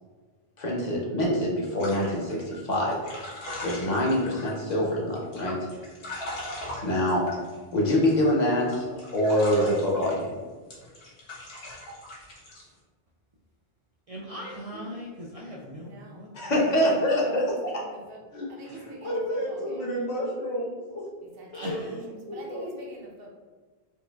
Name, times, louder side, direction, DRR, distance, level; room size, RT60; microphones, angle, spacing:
voice 1, 0.6-3.0 3.6-5.6 6.8-7.3 7.7-10.4 16.3-17.7, equal, 45° left, -3 dB, 0.8 m, -25 dB
sound 1, 1.8-4.8 5.2-8.2 8.6-10.2 10.7-12.6, left 1 dB, 70° left, 1.2 m, -39 dB
voice 2, 14.1-16.3 21.5-22.0, equal, 55° right, -4 dB, 0.4 m, -39 dB
voice 3, 15.8-16.3 17.2-18.2 18.5-19.8 21.4-22.0 22.3-23.3, right 2 dB, 70° right, -2 dB, 1.0 m, -46 dB
voice 4, 18.3-21.1 21.5-22.8, equal, 90° left, -5 dB, 1.3 m, -33 dB
4.5 x 2.4 x 2.3 m, 1.4 s
omnidirectional pair, 1.0 m